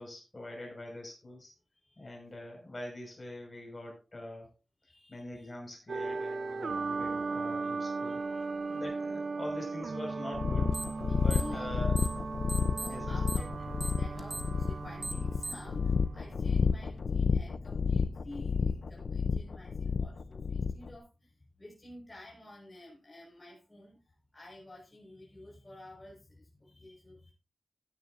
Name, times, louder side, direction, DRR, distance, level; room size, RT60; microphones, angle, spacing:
voice 1, 0.0-1.5 2.0-4.5 5.1-8.2 8.7-10.8 11.2-11.9 12.9-13.2, left 1 dB, 30° left, 0 dB, 5.5 m, -43 dB
voice 2, 1.7-2.1 4.8-5.5 7.6-7.7 8.0-8.8 11.0-11.7 12.5-27.3, left 1 dB, 15° left, -4 dB, 5.1 m, -51 dB
sound 1, 5.9-16.9, right 4 dB, 70° right, 0.7 m, -37 dB
sound 2, 10.3-20.9, left 5 dB, 75° left, 0.6 m, -31 dB
sound 3, 10.7-11.0 11.3-12.2 12.5-15.7, right 2 dB, 20° right, 1.4 m, -39 dB
16.5 x 10.0 x 2.6 m, 0.30 s
wide cardioid pair, 120°, 0 cm